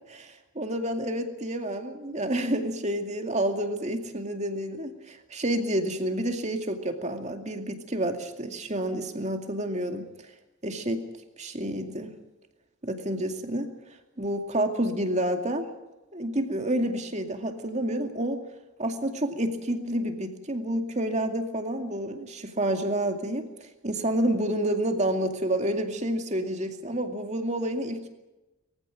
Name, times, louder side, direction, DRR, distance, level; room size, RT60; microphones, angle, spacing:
voice 1, 0.1-10.1 10.6-11.0 11.4-12.1 12.8-13.7 14.2-15.7 16.1-18.4 18.8-23.5 23.8-28.1, right 1 dB, 30° right, 5 dB, 2.3 m, -29 dB
23.0 x 15.5 x 9.1 m, 1.1 s
head